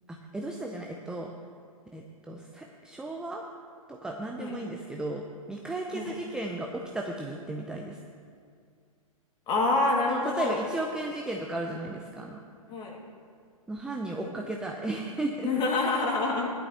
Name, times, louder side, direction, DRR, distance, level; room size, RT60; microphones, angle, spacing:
voice 1, 0.1-1.3 1.9-3.4 3.9-8.0 10.1-12.4 13.7-15.5, right 2 dB, 5° right, 1 dB, 0.5 m, -35 dB
voice 2, 9.5-10.6 12.7-13.0 15.4-16.5, left 3 dB, 25° left, -1 dB, 2.1 m, -27 dB
16.0 x 11.0 x 2.9 m, 2.2 s
figure-of-eight pair, 115°, 18 cm